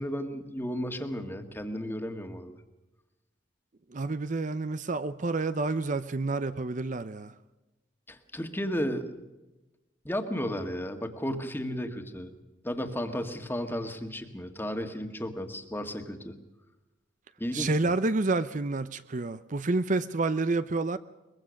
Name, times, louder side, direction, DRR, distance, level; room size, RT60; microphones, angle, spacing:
voice 1, 0.0-2.6 8.1-9.1 10.1-12.3 12.6-16.4 17.4-17.9, equal, 10° left, 1.8 m, -34 dB
voice 2, 3.9-7.3 17.5-21.0, right 3 dB, 45° right, 0.7 m, -29 dB
23.0 x 21.5 x 6.5 m
head